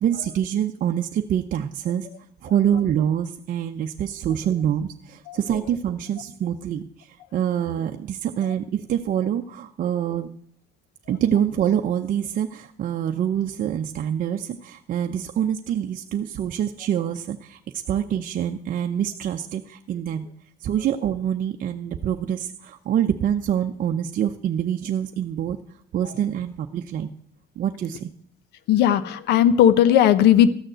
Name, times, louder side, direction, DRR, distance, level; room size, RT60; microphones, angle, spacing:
voice 1, 0.0-2.1 2.4-10.3 11.1-20.3 20.6-25.6 25.9-27.1 27.6-28.1, right 9 dB, 55° right, 4 dB, 0.7 m, -25 dB
voice 2, 28.7-30.5, left 10 dB, 80° left, 15 dB, 0.9 m, -16 dB
13.5 x 6.5 x 7.9 m, 0.65 s
cardioid pair, 110°, 17 cm